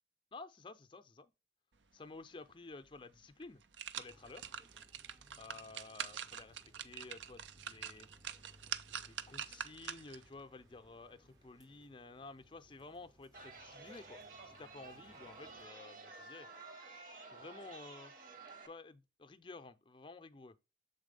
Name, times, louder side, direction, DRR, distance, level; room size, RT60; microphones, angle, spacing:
voice 1, 0.3-1.3 1.9-3.6 4.0-4.5 5.4-8.1 8.9-16.5 17.3-18.1 18.6-20.6, left 3 dB, 25° left, 0.5 m, -53 dB
sound 1, 2.9-3.0 3.4-10.3 10.7-10.8, right 9 dB, 80° right, 0.5 m, -45 dB
sound 2, 4.0-15.7, equal, 20° right, 0.5 m, -65 dB
Chatter, 13.3-18.7, right 3 dB, 50° right, 1.1 m, -52 dB
7.0 x 4.1 x 5.1 m
head